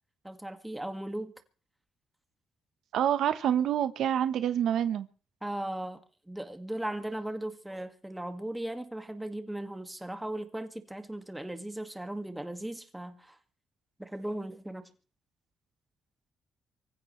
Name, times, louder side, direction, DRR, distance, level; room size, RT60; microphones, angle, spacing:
voice 1, 0.2-1.3 5.4-6.0 6.3-13.4 14.0-14.9, right 1 dB, 5° right, 2.0 m, -37 dB
voice 2, 2.9-5.1, right 10 dB, 75° right, 1.1 m, -27 dB
25.0 x 15.5 x 3.2 m
cardioid pair, 90°, 0 cm